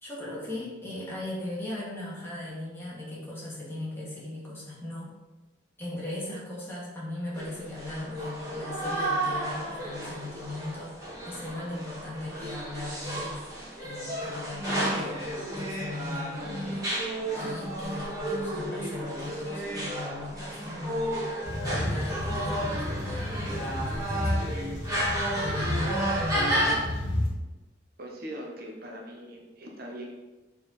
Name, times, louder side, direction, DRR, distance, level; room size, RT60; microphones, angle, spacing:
voice 1, 0.0-5.1 5.8-13.3 13.8-16.9 17.3-24.4 25.3-26.6, left 2 dB, 15° left, -6 dB, 2.2 m, -38 dB
sound 1, 7.3-26.7, right 1 dB, 20° right, 2.3 m, -32 dB
sound 2, 21.4-27.3, left 1 dB, 75° left, 2.0 m, -32 dB
voice 2, 28.0-30.1, right 1 dB, 55° right, -1 dB, 1.1 m, -41 dB
6.8 x 4.6 x 4.2 m, 1.1 s
head